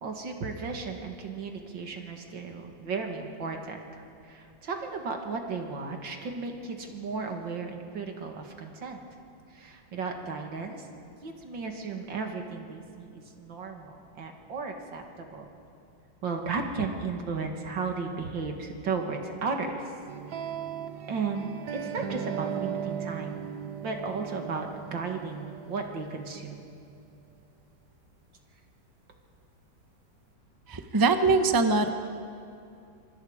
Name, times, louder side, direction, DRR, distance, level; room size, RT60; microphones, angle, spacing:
voice 1, 0.0-9.0 9.5-10.9 11.2-15.5 16.2-19.9 21.1-23.4 23.8-26.7, right 4 dB, 85° right, 3 dB, 2.7 m, -35 dB
sound 1, 20.1-27.1, right 8 dB, 65° right, 1.6 m, -37 dB
voice 2, 30.7-31.9, right 3 dB, 15° right, 7 dB, 0.7 m, -22 dB
26.0 x 24.5 x 5.0 m, 2.5 s
omnidirectional pair, 2.0 m